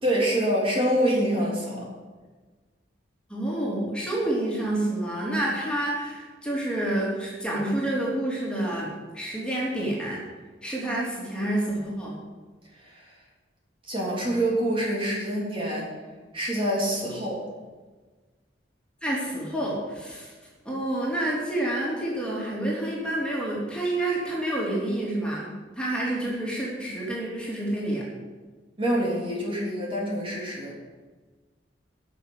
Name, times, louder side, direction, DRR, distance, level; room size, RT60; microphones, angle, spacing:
voice 1, 0.0-1.9 12.8-13.1 13.9-15.9 16.3-17.4 28.8-30.8, right 1 dB, 30° right, -4 dB, 3.4 m, -26 dB
voice 2, 3.3-10.2 10.6-12.2 19.0-20.3 20.6-28.0, right 1 dB, 5° left, -5 dB, 3.2 m, -28 dB
11.5 x 6.7 x 9.5 m, 1.3 s
head